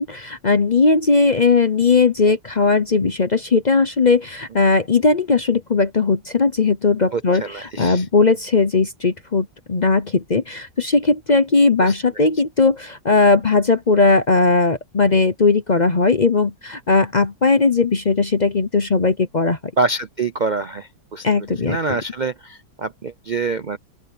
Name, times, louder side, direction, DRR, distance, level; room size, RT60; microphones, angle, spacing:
voice 1, 0.0-19.6 21.2-22.0, left 4 dB, 40° left, 0.6 m, -18 dB
voice 2, 7.1-8.0 11.8-11.9 19.8-21.2 21.6-23.8, right 3 dB, 90° right, 0.4 m, -25 dB
open air
omnidirectional pair, 1.9 m